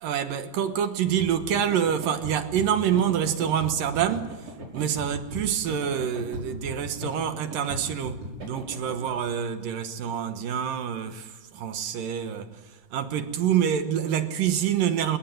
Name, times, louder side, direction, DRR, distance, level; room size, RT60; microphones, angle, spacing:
voice 1, 0.0-15.2, right 9 dB, 65° right, 2.7 m, -27 dB
sound 1, 1.0-9.1, right 1 dB, 35° right, 6.8 m, -38 dB
30.0 x 17.5 x 9.3 m
omnidirectional pair, 4.7 m